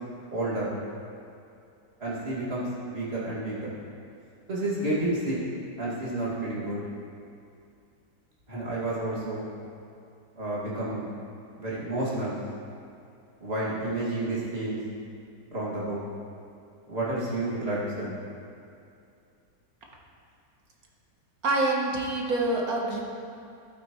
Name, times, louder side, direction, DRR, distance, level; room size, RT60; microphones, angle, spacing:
voice 1, 0.3-0.7 2.0-3.7 4.5-5.4 5.8-6.8 8.5-9.4 10.4-11.1 11.6-12.3 13.4-14.8 15.5-16.0 16.9-18.1, right 2 dB, 35° right, -8 dB, 2.5 m, -30 dB
voice 2, 21.4-23.0, right 2 dB, 60° right, -1 dB, 1.6 m, -26 dB
12.5 x 9.1 x 3.1 m, 2.5 s
omnidirectional pair, 1.9 m